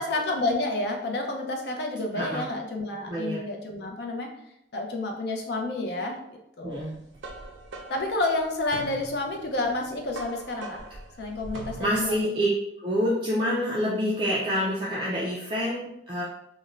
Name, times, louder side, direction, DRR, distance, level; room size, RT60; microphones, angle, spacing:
voice 1, 0.0-4.3 4.7-6.2 6.6-6.8 7.9-10.8 11.2-12.3, left 2 dB, 60° left, 2 dB, 0.4 m, -29 dB
voice 2, 3.1-3.4 6.6-7.0 11.8-12.5 12.8-16.2, equal, 25° right, -5 dB, 0.3 m, -27 dB
sound 1, 6.8-12.2, right 2 dB, 85° right, 0.4 m, -42 dB
2.4 x 2.1 x 3.1 m, 0.80 s
head